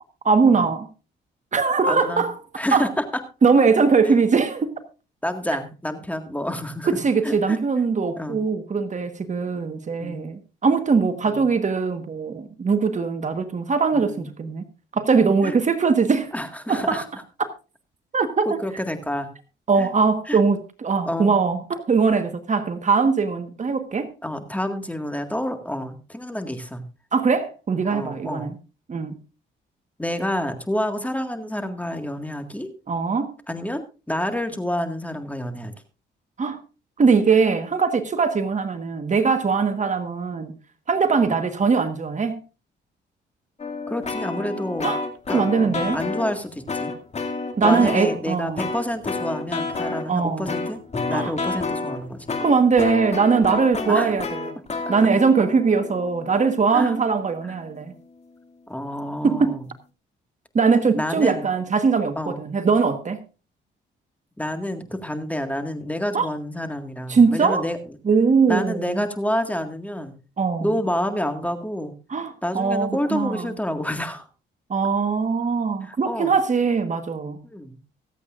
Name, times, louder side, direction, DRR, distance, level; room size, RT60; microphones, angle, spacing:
voice 1, 0.2-0.9 1.5-2.3 2.7-2.9 3.4-4.7 6.9-14.6 14.9-16.3 16.7-17.0 17.4-17.5 18.1-18.5 19.7-24.1 27.1-28.5 28.9-29.2 32.9-33.3 36.4-36.6 37.0-40.6 40.9-42.4 44.8-45.0 45.3-46.0 47.6-48.7 50.1-50.5 51.1-51.3 52.4-54.5 54.9-57.9 59.2-59.6 60.5-63.2 66.1-66.2 67.1-67.7 68.0-69.0 70.4-70.7 72.1-73.5 74.7-77.4, right 5 dB, 40° right, 1.4 m, -21 dB
voice 2, 1.9-2.2 2.6-3.0 5.2-6.9 7.2-7.6 8.2-8.4 10.0-10.3 11.3-11.5 13.9-14.3 15.4-15.6 16.3-17.1 18.5-19.3 19.8-19.9 20.3-20.4 21.0-21.3 24.2-26.8 27.9-28.5 30.0-32.7 33.5-35.7 43.9-44.9 45.3-46.9 47.6-50.8 51.1-52.3 53.9-54.1 56.7-57.0 58.7-59.7 61.0-61.5 62.2-62.4 64.4-67.8 68.5-70.1 70.6-71.9 72.4-74.3 75.8-76.3 77.4-77.8, left 1 dB, 5° left, 1.8 m, -28 dB
sound 1, 43.6-46.4 46.7-48.2 48.6-50.0 50.5-57.5, left 3 dB, 35° left, 2.4 m, -30 dB
24.0 x 8.4 x 2.5 m
cardioid pair, 90°, 20 cm